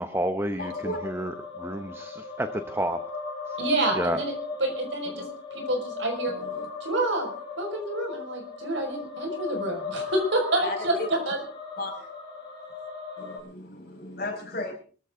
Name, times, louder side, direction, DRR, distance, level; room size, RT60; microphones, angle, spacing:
voice 1, 0.0-0.7 1.0-1.3 1.6-3.0 4.0-4.2, right 1 dB, 10° right, 9 dB, 0.9 m, -29 dB
voice 2, 0.6-1.0 4.1-4.2 5.1-5.2 6.4-6.6 10.6-11.1 11.8-11.9 13.2-13.6 14.0-14.7, left 2 dB, 50° left, 2 dB, 5.5 m, -34 dB
sound 1, 0.6-13.4, left 4 dB, 25° left, 6.8 m, -37 dB
voice 3, 3.6-4.3 4.6-5.3 5.5-6.3 6.8-7.3 7.6-11.4, right 1 dB, 70° right, 4 dB, 5.4 m, -28 dB
23.5 x 14.0 x 3.8 m, 0.41 s
head